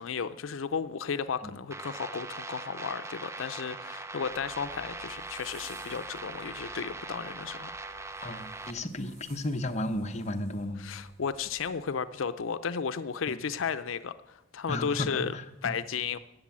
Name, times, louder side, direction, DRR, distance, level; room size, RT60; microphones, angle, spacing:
voice 1, 0.0-7.7 10.8-15.3 15.6-16.2, left 6 dB, 90° left, 13 dB, 0.5 m, -34 dB
sound 1, 1.7-8.7, right 3 dB, 15° right, 0.7 m, -41 dB
Zipper (clothing), 4.2-11.7, right 1 dB, 50° right, 4.5 m, -57 dB
voice 2, 8.2-10.8 13.3-13.4 14.7-15.8, left 1 dB, 35° left, 6 dB, 1.0 m, -34 dB
13.5 x 8.2 x 8.5 m, 0.94 s
head